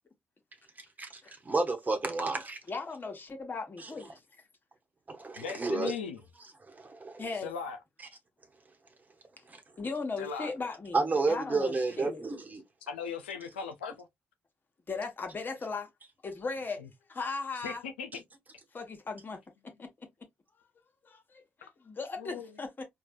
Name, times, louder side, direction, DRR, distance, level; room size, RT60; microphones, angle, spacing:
voice 1, 0.8-2.6 3.8-3.9 5.1-5.9 6.7-7.2 9.5-9.6 10.9-12.6, right 3 dB, 30° right, 1.2 m, -31 dB
voice 2, 2.7-4.2 7.2-7.5 9.8-12.2 14.9-15.9 16.2-16.8 17.1-17.8 18.7-19.4 19.8-19.9 21.0-22.8, left 4 dB, 35° left, 1.1 m, -37 dB
voice 3, 5.4-6.2 7.4-7.8 10.2-10.5 12.9-14.1 17.6-18.2 22.2-22.5, left 6 dB, 85° left, 0.4 m, -38 dB
4.5 x 2.3 x 2.5 m
figure-of-eight pair, 40°, 6 cm